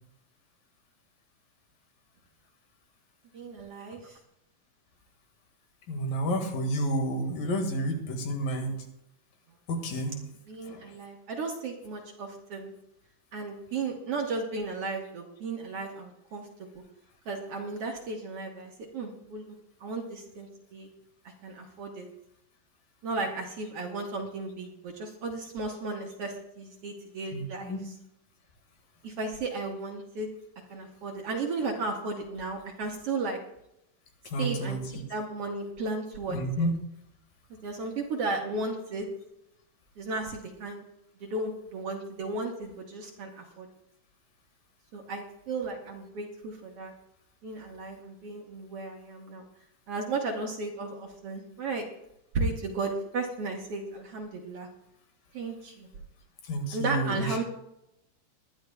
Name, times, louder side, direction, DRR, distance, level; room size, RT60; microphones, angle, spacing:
voice 1, 3.3-4.2 10.5-12.7 13.3-16.5 17.3-20.9 21.2-22.1 23.0-27.9 29.0-30.3 30.7-33.4 34.4-36.7 37.6-39.1 40.0-40.8 41.2-43.7 44.9-46.9 47.4-49.4 49.9-51.9 52.3-54.7 55.3-55.9 56.7-57.4, right 3 dB, 55° right, 1 dB, 1.9 m, -34 dB
voice 2, 5.9-8.8 9.7-10.2 10.7-10.9 27.3-27.8 34.3-35.0 36.3-36.7 56.5-57.4, right 1 dB, 85° left, 3 dB, 3.6 m, -30 dB
21.0 x 11.5 x 2.3 m, 0.81 s
omnidirectional pair, 3.8 m